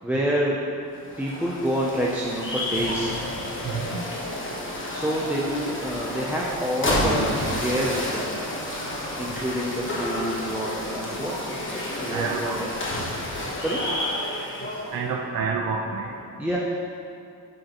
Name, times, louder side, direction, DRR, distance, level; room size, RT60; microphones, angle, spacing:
voice 1, 0.0-0.6 1.2-3.1 4.9-8.3 9.2-12.7 13.3-13.8 16.4-16.6, equal, 5° right, -5 dB, 0.5 m, -28 dB
sound 1, 0.9-15.0, left 1 dB, 30° left, 1.2 m, -30 dB
sound 2, 7.1-11.5 11.8-13.1, right 1 dB, 40° right, 1.8 m, -45 dB
voice 2, 12.1-12.6 14.9-16.1, right 5 dB, 65° right, -1 dB, 0.7 m, -28 dB
11.5 x 5.3 x 2.9 m, 2.6 s
wide cardioid pair, 170°, 39 cm